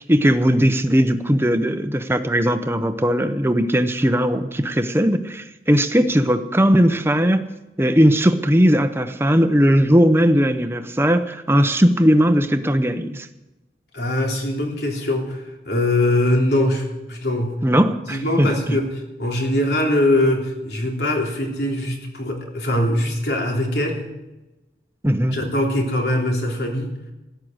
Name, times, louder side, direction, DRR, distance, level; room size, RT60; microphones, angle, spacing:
voice 1, 0.1-7.5 7.8-13.3 17.6-18.8 25.0-25.4, equal, 15° right, 0.8 m, -18 dB
voice 2, 13.9-17.5 18.1-24.0 25.3-26.9, left 1 dB, 70° left, 3.3 m, -22 dB
13.5 x 11.5 x 8.0 m
head